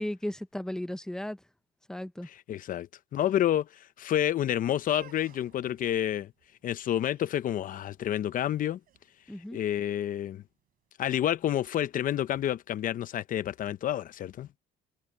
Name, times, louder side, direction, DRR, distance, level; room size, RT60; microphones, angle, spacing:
voice 1, 0.0-1.4 1.9-2.3 9.3-9.6, left 1 dB, 5° left, 0.9 m, -35 dB
voice 2, 2.5-3.7 4.0-6.3 6.6-8.8 9.5-10.4 11.0-14.5, left 11 dB, 55° left, 0.8 m, -29 dB
sound 1, 4.8-10.7, right 11 dB, 60° right, 5.5 m, -59 dB
cardioid pair, 110°, 17 cm